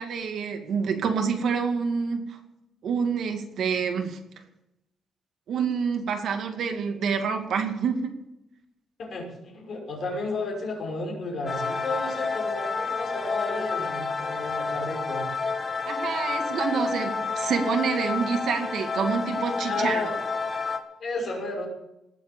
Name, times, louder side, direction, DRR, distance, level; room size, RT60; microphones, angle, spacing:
voice 1, 0.0-2.4 2.8-4.2 5.5-8.1 15.9-20.1, right 6 dB, 60° right, 4 dB, 2.3 m, -27 dB
voice 2, 9.0-15.2 19.7-20.1 21.0-21.7, left 2 dB, 45° left, 0 dB, 5.8 m, -32 dB
sound 1, 11.5-20.8, left 4 dB, 25° left, 1.7 m, -29 dB
19.0 x 7.8 x 8.7 m, 0.88 s
cardioid pair, 150°, 0 cm